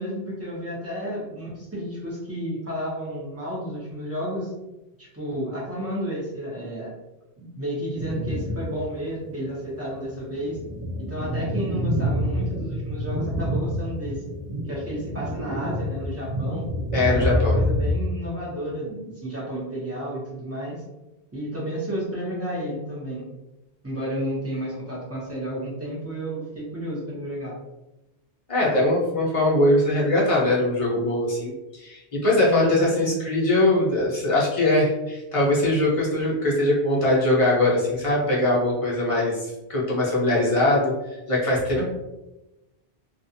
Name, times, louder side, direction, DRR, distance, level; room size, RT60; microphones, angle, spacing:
voice 1, 0.0-4.5 5.0-6.9 7.4-10.6 11.1-14.2 14.7-16.7 17.0-20.8 21.3-23.2 23.8-27.6 32.4-33.2 41.7-41.8, equal, 15° right, -7 dB, 0.8 m, -32 dB
sound 1, 8.0-8.9 9.3-9.4 10.0-17.9, equal, 70° right, 0.3 m, -27 dB
voice 2, 16.9-17.6 28.5-40.9 41.3-41.8, left 1 dB, 35° left, -5 dB, 0.8 m, -21 dB
2.5 x 2.4 x 2.7 m, 0.99 s
omnidirectional pair, 1.1 m